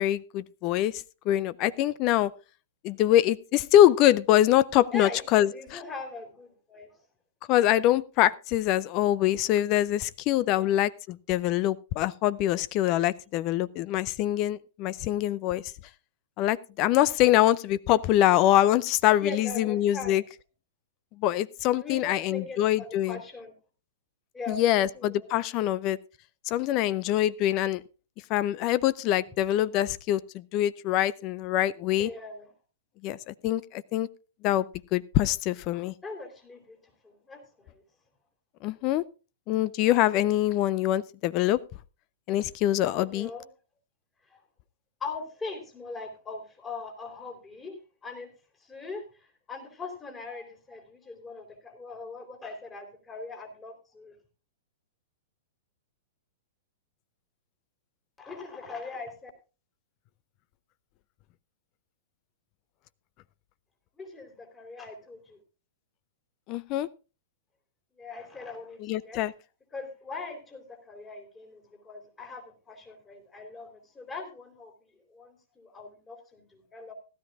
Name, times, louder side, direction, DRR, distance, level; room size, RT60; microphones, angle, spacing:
voice 1, 0.0-2.3 2.8-5.8 7.5-15.6 16.4-20.2 21.2-23.2 24.5-26.0 26.5-27.8 28.3-32.1 33.0-34.1 34.4-34.6 34.9-35.9 38.6-39.0 39.5-41.6 42.3-43.3 66.5-66.9 68.8-69.3, left 13 dB, 40° left, 18 dB, 0.6 m, -24 dB
voice 2, 4.9-7.0 10.4-10.8 16.8-17.1 19.2-20.2 21.8-23.5 24.3-25.3 32.0-32.5 36.0-36.8 37.0-37.8 43.0-43.5 44.3-44.4 45.0-47.8 48.0-48.3 48.6-54.1 58.2-59.3 64.0-65.4 68.0-69.2 69.7-74.7 75.1-76.9, left 3 dB, 15° left, 4 dB, 3.7 m, -41 dB
16.5 x 12.5 x 2.5 m, 0.33 s
hypercardioid pair, 110°, 0 cm